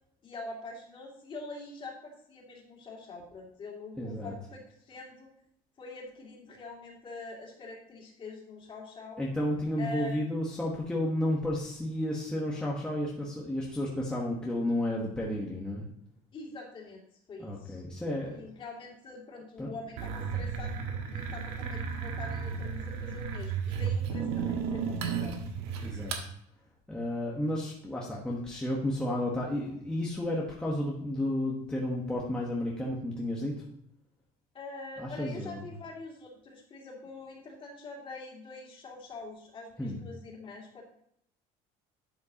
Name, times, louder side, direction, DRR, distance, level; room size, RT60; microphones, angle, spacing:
voice 1, 0.2-5.3 5.8-9.2 9.8-10.3 16.3-17.0 17.3-17.8 18.2-25.4 34.5-40.8, left 3 dB, 30° left, -2 dB, 2.6 m, -44 dB
voice 2, 4.0-4.3 9.2-15.8 17.4-18.4 19.6-19.7 25.8-26.3 26.9-33.5 35.0-35.8 39.8-40.0, left 1 dB, 5° left, -4 dB, 1.3 m, -32 dB
sound 1, 20.0-26.3, right 6 dB, 90° right, 1.4 m, -33 dB
11.0 x 7.6 x 2.9 m, 0.73 s
cardioid pair, 150°, 16 cm